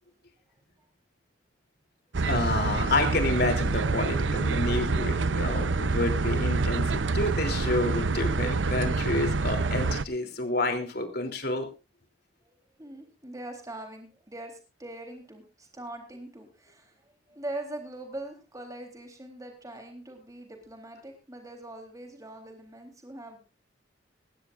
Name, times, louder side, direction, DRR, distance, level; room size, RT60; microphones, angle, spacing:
sound 1, 2.1-10.0, right 3 dB, 85° right, 0.7 m, -27 dB
voice 1, 2.2-11.7, left 2 dB, 60° left, 5 dB, 3.3 m, -29 dB
voice 2, 12.8-14.5 14.8-16.9 17.3-23.4, right 1 dB, 20° right, 4 dB, 3.7 m, -42 dB
20.5 x 16.0 x 2.6 m, 0.31 s
head